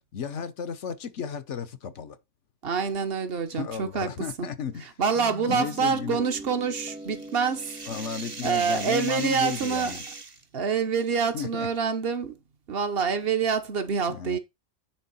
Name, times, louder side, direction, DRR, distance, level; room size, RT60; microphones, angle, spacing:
voice 1, 0.0-2.2 3.5-4.9 5.5-6.2 7.9-10.0 11.3-11.7 14.1-14.4, left 7 dB, 75° left, 1.3 m, -34 dB
voice 2, 2.6-4.1 4.4-4.5 4.8-7.7 8.4-10.0 10.5-12.4 12.7-14.4, right 6 dB, 55° right, 1.3 m, -26 dB
Guitar, 5.2-10.2, right 1 dB, 5° right, 0.6 m, -43 dB
sound 1, 6.7-10.4, right 3 dB, 30° right, 0.9 m, -39 dB
10.5 x 3.6 x 5.5 m
omnidirectional pair, 1.2 m